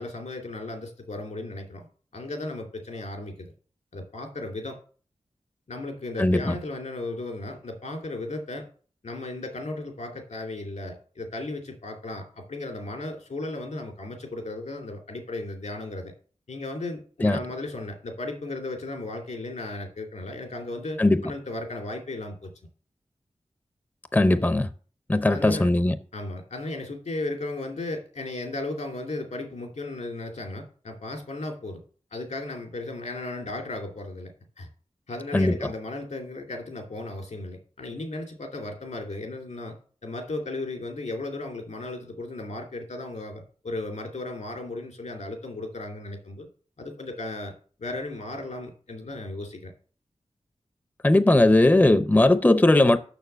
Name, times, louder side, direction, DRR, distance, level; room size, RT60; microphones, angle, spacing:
voice 1, 0.0-1.9 2.1-3.5 3.9-4.8 5.7-8.7 9.0-16.1 16.5-22.5 25.3-25.7 26.1-31.8 32.1-34.3 34.6-34.7 35.1-39.8 40.0-46.5 46.8-47.5 47.8-49.7, left 2 dB, 85° left, 2.6 m, -35 dB
voice 2, 24.1-24.7 25.1-26.0 35.3-35.6 51.0-53.0, left 2 dB, 15° left, 0.5 m, -19 dB
6.8 x 6.5 x 6.7 m
wide cardioid pair, 85°, 12 cm